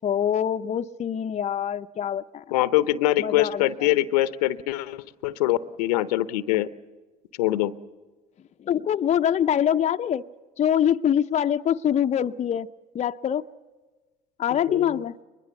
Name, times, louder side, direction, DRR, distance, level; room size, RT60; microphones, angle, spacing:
voice 1, 0.0-2.4 3.2-3.9 8.7-10.2 10.6-12.7 12.9-13.4 14.4-15.2, left 9 dB, 35° left, 9 dB, 0.6 m, -24 dB
voice 2, 2.5-6.7 7.4-7.7 14.5-15.0, left 15 dB, 85° left, 16 dB, 0.8 m, -24 dB
23.0 x 21.5 x 7.0 m, 1.3 s
hypercardioid pair, 75°, 20 cm